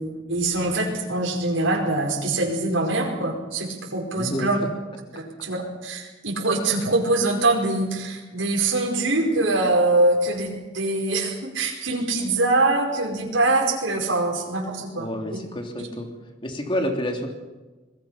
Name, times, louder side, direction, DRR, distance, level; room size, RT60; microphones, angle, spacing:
voice 1, 0.0-4.6 5.1-15.2 15.8-15.9, right 2 dB, 85° right, -1 dB, 5.1 m, -23 dB
voice 2, 4.1-4.5 14.9-16.1 16.4-17.3, equal, 25° left, 2 dB, 3.2 m, -28 dB
26.5 x 21.0 x 5.9 m, 1.2 s
head